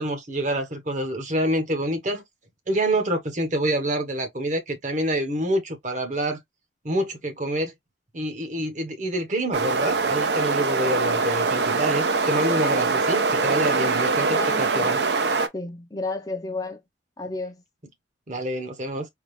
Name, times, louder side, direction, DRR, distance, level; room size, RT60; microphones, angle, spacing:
voice 1, 0.0-2.2 2.7-6.4 6.8-7.7 8.1-15.0 18.3-19.1, right 1 dB, 40° right, 1.0 m, -27 dB
sound 1, 9.5-15.5, right 4 dB, 65° right, 0.6 m, -23 dB
voice 2, 14.3-15.0 15.5-16.8 17.2-17.6, left 3 dB, 20° left, 0.5 m, -32 dB
3.6 x 2.4 x 3.0 m
head